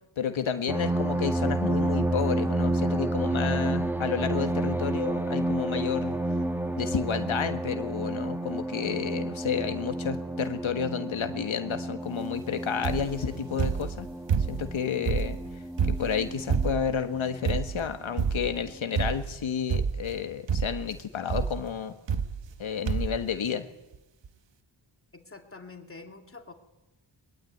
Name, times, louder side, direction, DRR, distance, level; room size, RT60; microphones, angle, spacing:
voice 1, 0.2-6.2 6.8-14.1 14.5-15.4 15.9-21.9 22.6-23.7, left 7 dB, 85° left, 8 dB, 1.5 m, -31 dB
sound 1, 0.7-17.7 18.4-18.5 18.9-19.1, right 1 dB, 5° right, 1.3 m, -30 dB
sound 2, 12.8-13.2 13.6-14.7 15.0-17.0 17.4-17.9 18.2-18.6 19.0-19.4 19.7-20.2 20.5-20.9 21.3-21.6 22.1-22.6 22.9-23.2 23.9-24.0 24.2-24.3, right 6 dB, 65° right, 1.1 m, -28 dB
voice 2, 25.1-26.5, left 3 dB, 30° left, 5 dB, 2.5 m, -46 dB
23.0 x 22.0 x 9.2 m, 0.97 s
wide cardioid pair, 135°, 47 cm